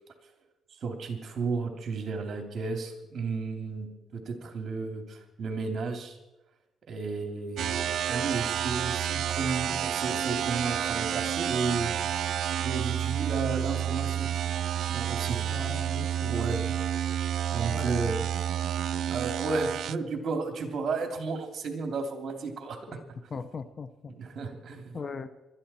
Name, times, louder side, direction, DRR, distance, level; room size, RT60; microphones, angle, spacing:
voice 1, 0.8-6.2 6.9-12.0 12.6-14.3 14.8-15.4 16.2-16.6 17.5-18.4 19.1-23.0 24.2-25.0, right 4 dB, 55° right, 4 dB, 2.9 m, -33 dB
sound 1, 7.6-20.0, right 10 dB, 70° right, 0.4 m, -30 dB
voice 2, 15.5-16.4 17.7-18.0 22.9-23.0 23.3-24.1 24.9-25.3, left 5 dB, 40° left, 12 dB, 0.9 m, -39 dB
21.0 x 13.5 x 4.4 m, 0.99 s
cardioid pair, 90°, 0 cm